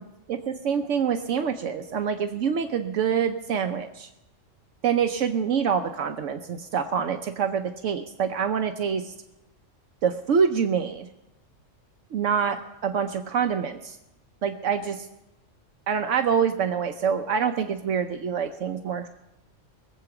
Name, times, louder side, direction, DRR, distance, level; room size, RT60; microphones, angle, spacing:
voice 1, 0.3-4.1 4.8-9.1 10.0-11.1 12.1-14.0 14.4-15.1 15.9-19.1, right 7 dB, 75° right, 7 dB, 1.0 m, -26 dB
21.0 x 7.9 x 5.9 m, 0.93 s
omnidirectional pair, 1.3 m